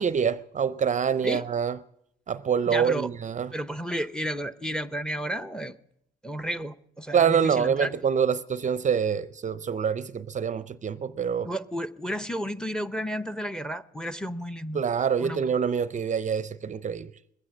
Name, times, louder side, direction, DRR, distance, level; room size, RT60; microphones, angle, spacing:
voice 1, 0.0-1.8 2.3-3.5 7.1-11.5 14.7-17.1, right 7 dB, 40° right, 0.5 m, -26 dB
voice 2, 2.7-3.1 3.5-5.8 6.2-7.9 11.4-14.8 15.2-15.5, equal, 5° left, 0.6 m, -32 dB
21.0 x 8.9 x 7.3 m
cardioid pair, 90°, 20 cm